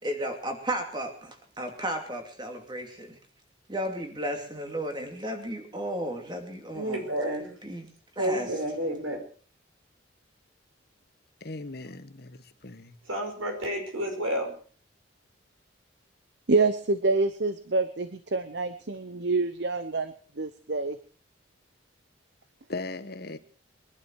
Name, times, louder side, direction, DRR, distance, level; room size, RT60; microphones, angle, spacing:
voice 1, 0.0-3.2 3.7-7.1 7.6-7.9 8.2-8.5, right 1 dB, 20° right, 2.6 m, -34 dB
voice 2, 6.7-7.5 8.2-9.2 13.1-14.5, right 1 dB, 85° right, 5.4 m, -30 dB
voice 3, 11.4-13.0 22.7-23.4, left 2 dB, 50° left, 1.2 m, -38 dB
voice 4, 16.5-21.0, right 3 dB, 55° right, 0.8 m, -27 dB
22.5 x 11.5 x 4.7 m
head